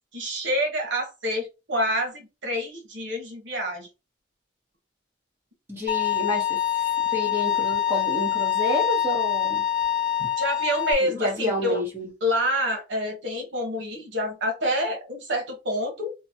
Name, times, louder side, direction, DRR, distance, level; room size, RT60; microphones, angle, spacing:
voice 1, 0.1-3.9 10.2-11.8 12.2-16.1, equal, 75° right, 1.0 m, -27 dB
voice 2, 5.7-6.8 7.1-9.6 11.0-12.1, left 1 dB, 10° right, 0.9 m, -29 dB
Bowed string instrument, 5.9-10.9, left 10 dB, 50° left, 0.5 m, -25 dB
2.9 x 2.2 x 2.7 m
head